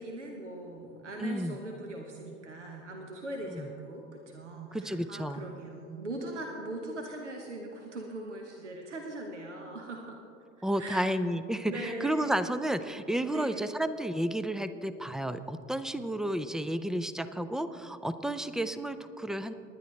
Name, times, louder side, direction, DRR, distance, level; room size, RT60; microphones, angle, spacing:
voice 1, 0.0-10.2 10.8-11.2 11.7-12.4 13.3-13.6, right 1 dB, 85° right, 2 dB, 1.1 m, -40 dB
voice 2, 1.2-1.6 3.5-3.7 4.7-5.4 10.6-19.5, right 1 dB, ahead, 12 dB, 0.3 m, -32 dB
19.0 x 10.5 x 3.2 m, 2.6 s
figure-of-eight pair, 70°, 35 cm